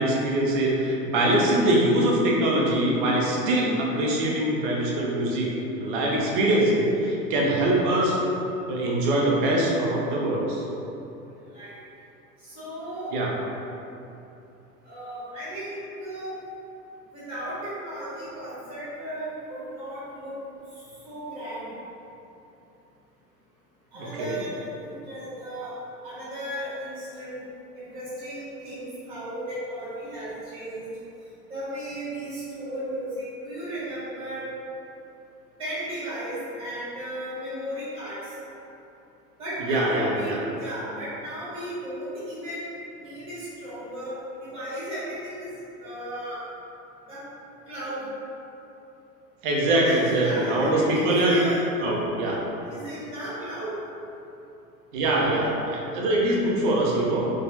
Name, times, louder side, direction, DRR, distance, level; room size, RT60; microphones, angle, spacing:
voice 1, 0.0-5.5 5.8-8.2 8.7-10.7 13.1-13.3 24.0-24.4 39.6-40.4 49.4-51.4 51.8-52.4 54.9-57.3, right 1 dB, 35° right, -3 dB, 0.6 m, -23 dB
voice 2, 12.4-13.2 14.8-16.3 17.1-20.3 21.0-21.7 23.9-25.7 26.0-27.4 27.7-30.9 31.5-34.5 35.6-38.2 39.4-42.7 43.0-45.5 45.8-46.4 47.1-47.2 47.7-48.1 49.6-51.6 52.6-53.7, right 1 dB, 10° right, -11 dB, 1.4 m, -35 dB
4.0 x 2.3 x 2.8 m, 2.8 s
figure-of-eight pair, 95°, 49 cm